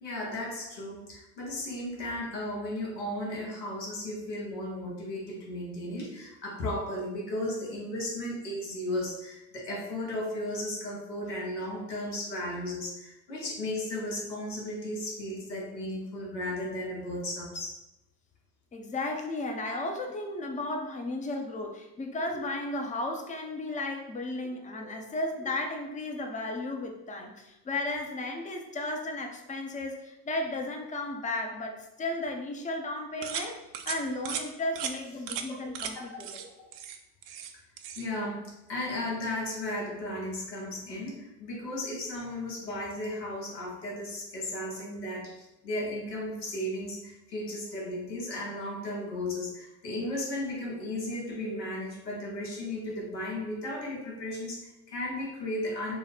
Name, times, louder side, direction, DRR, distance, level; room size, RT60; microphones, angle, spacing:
voice 1, 0.0-17.7 24.8-24.9 35.2-35.7 35.9-36.1 38.0-56.0, left 1 dB, 90° left, -3 dB, 1.0 m, -35 dB
voice 2, 18.7-36.4, left 2 dB, 15° left, 3 dB, 0.5 m, -34 dB
sound 1, 33.2-33.5 33.7-34.0 34.2-34.4 34.8-34.9 35.3-35.5 35.7-35.9 36.2-36.4 36.7-37.5 37.8-38.1, right 9 dB, 55° right, 0.5 m, -36 dB
3.0 x 2.0 x 4.0 m, 0.93 s
hypercardioid pair, 65°, 49 cm